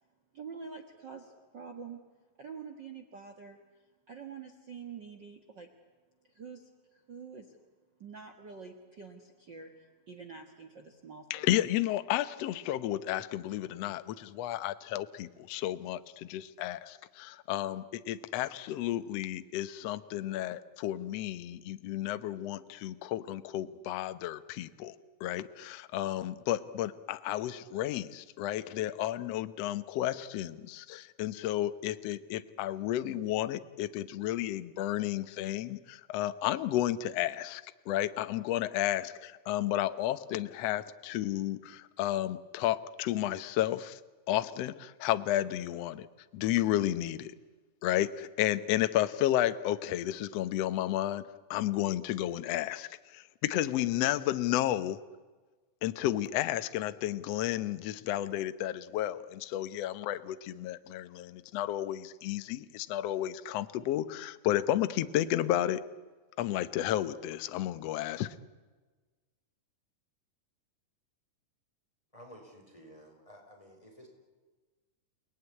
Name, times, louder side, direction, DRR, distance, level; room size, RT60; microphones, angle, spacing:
voice 1, 0.3-2.0 2.4-3.6 4.1-5.7 6.3-7.6 8.0-11.5, right 5 dB, 45° right, 4 dB, 1.7 m, -46 dB
voice 2, 11.3-25.0 25.2-44.0 44.3-46.1 46.3-47.3 47.8-55.0 55.8-65.8 66.4-68.4, left 13 dB, 70° left, 11 dB, 1.6 m, -32 dB
voice 3, 72.1-74.1, equal, 10° left, 2 dB, 5.0 m, -53 dB
29.5 x 19.5 x 9.7 m, 1.3 s
omnidirectional pair, 4.0 m